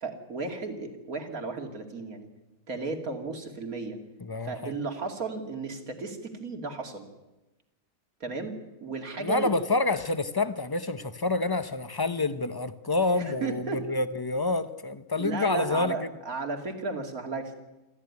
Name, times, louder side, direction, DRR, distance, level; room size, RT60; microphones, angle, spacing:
voice 1, 0.0-2.3 2.7-4.0 4.4-7.1 8.2-9.5 13.1-13.8 15.1-17.5, right 4 dB, 85° right, 4 dB, 3.0 m, -34 dB
voice 2, 4.2-4.7 9.2-16.1, left 3 dB, 20° left, 12 dB, 0.7 m, -28 dB
26.0 x 13.5 x 9.6 m, 1.0 s
omnidirectional pair, 1.5 m